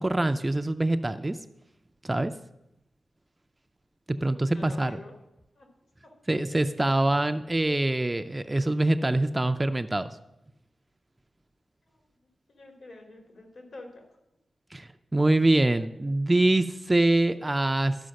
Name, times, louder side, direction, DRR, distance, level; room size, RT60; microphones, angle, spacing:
voice 1, 0.0-1.4 2.0-2.3 4.1-5.0 6.3-10.1 14.7-18.0, right 2 dB, 15° right, 9 dB, 0.4 m, -24 dB
voice 2, 4.5-5.1 5.5-5.7 6.0-6.1 11.9-12.0 12.5-14.0, left 2 dB, 70° left, 1 dB, 2.8 m, -47 dB
12.5 x 4.9 x 6.4 m, 0.88 s
wide cardioid pair, 115°, 0 cm